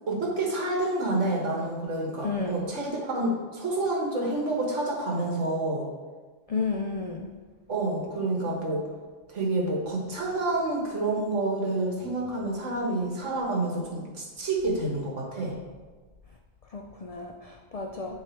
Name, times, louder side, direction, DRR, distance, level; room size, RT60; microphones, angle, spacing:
voice 1, 0.1-5.9 7.7-8.9 9.3-15.6, right 2 dB, 65° right, -1 dB, 1.7 m, -28 dB
voice 2, 2.2-2.6 6.5-7.3 16.7-18.2, left 4 dB, 80° left, 2 dB, 0.3 m, -32 dB
10.0 x 3.5 x 4.5 m, 1.4 s
omnidirectional pair, 1.3 m